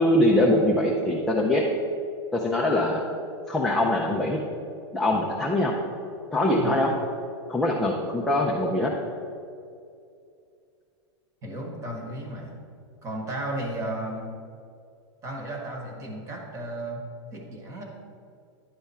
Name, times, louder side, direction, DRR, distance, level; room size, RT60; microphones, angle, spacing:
voice 1, 0.0-1.6 2.3-3.0 3.5-4.4 4.9-5.7 6.3-6.9 7.5-8.9, left 1 dB, ahead, -3 dB, 0.4 m, -23 dB
voice 2, 11.4-12.6 13.0-14.3 15.2-17.0 17.3-17.8, right 1 dB, 20° right, 1 dB, 1.1 m, -34 dB
10.5 x 3.5 x 5.5 m, 2.4 s
supercardioid pair, 165°, 15 cm